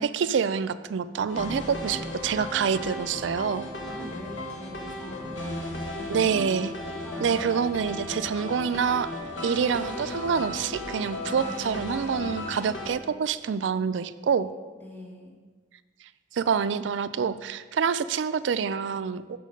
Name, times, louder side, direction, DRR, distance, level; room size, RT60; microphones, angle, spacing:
voice 1, 0.0-3.7 6.1-6.7 7.2-9.1 9.4-14.5 16.3-19.2, right 6 dB, 75° right, 14 dB, 0.4 m, -27 dB
sound 1, 1.3-12.9, left 1 dB, 85° left, 1.2 m, -35 dB
voice 2, 3.8-6.6 7.0-7.6 11.1-11.6 14.7-15.4, equal, 10° left, -2 dB, 1.5 m, -43 dB
8.4 x 6.1 x 5.2 m, 1.4 s
head